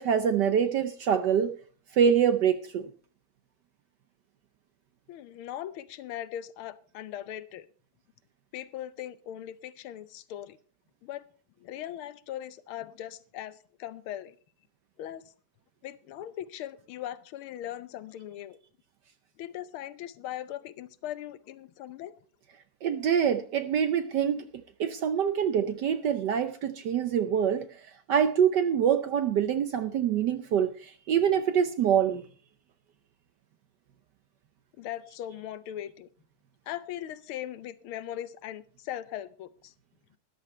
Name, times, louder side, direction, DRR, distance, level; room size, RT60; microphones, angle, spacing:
voice 1, 0.0-1.5 1.9-2.9 22.8-24.4 24.8-27.6 28.1-32.2, right 8 dB, 65° right, 11 dB, 1.2 m, -25 dB
voice 2, 5.1-7.7 8.5-10.6 11.0-11.2 11.6-14.4 15.0-15.3 15.8-18.6 19.4-22.2 34.8-36.1 36.7-39.7, left 11 dB, 85° left, 15 dB, 1.6 m, -39 dB
13.5 x 11.0 x 4.3 m, 0.40 s
omnidirectional pair, 2.3 m